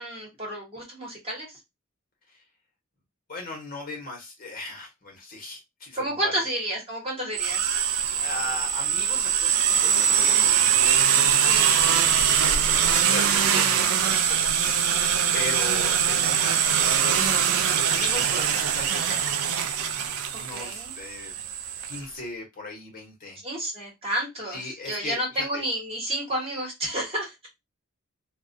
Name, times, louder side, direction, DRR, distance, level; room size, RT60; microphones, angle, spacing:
voice 1, 0.0-1.6 5.9-7.6 11.5-11.7 20.3-20.9 23.4-27.5, right 1 dB, 30° right, -2 dB, 1.0 m, -31 dB
voice 2, 3.3-6.3 8.1-10.4 10.9-11.8 12.1-19.3 20.1-21.5 21.8-23.4 24.5-25.6, left 2 dB, 40° left, 0 dB, 0.9 m, -38 dB
sound 1, 7.3-22.0, right 8 dB, 85° right, 0.4 m, -22 dB
2.3 x 2.1 x 2.5 m, 0.21 s
head